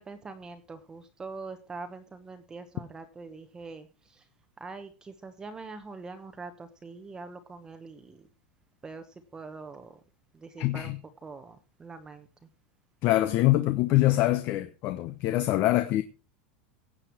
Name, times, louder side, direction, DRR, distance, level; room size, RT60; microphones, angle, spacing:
voice 1, 0.0-4.2 4.6-8.3 8.8-9.1 9.3-10.0 10.3-10.9 11.2-12.5, right 4 dB, 15° right, 1.1 m, -43 dB
voice 2, 10.6-11.0 13.0-16.0, left 16 dB, 40° left, 0.9 m, -24 dB
16.0 x 8.8 x 4.6 m
supercardioid pair, 155°, 5 cm